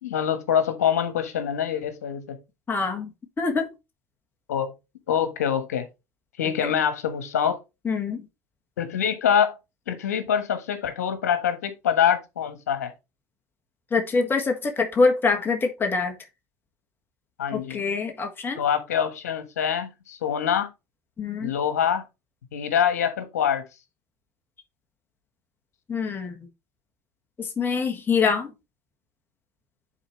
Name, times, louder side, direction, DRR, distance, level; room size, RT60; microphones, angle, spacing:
voice 1, 0.0-2.4 4.5-4.7 5.1-5.9 6.4-7.6 8.8-9.5 9.9-12.9 17.4-17.8 18.5-20.7 21.4-22.0 22.5-23.7, left 8 dB, 85° left, 1.3 m, -25 dB
voice 2, 2.7-3.1 3.4-3.7 7.8-8.2 13.9-16.1 17.5-18.6 21.2-21.5 25.9-26.3 27.4-28.5, left 4 dB, 25° left, 1.6 m, -24 dB
10.0 x 4.2 x 3.1 m
hypercardioid pair, 85°, 8 cm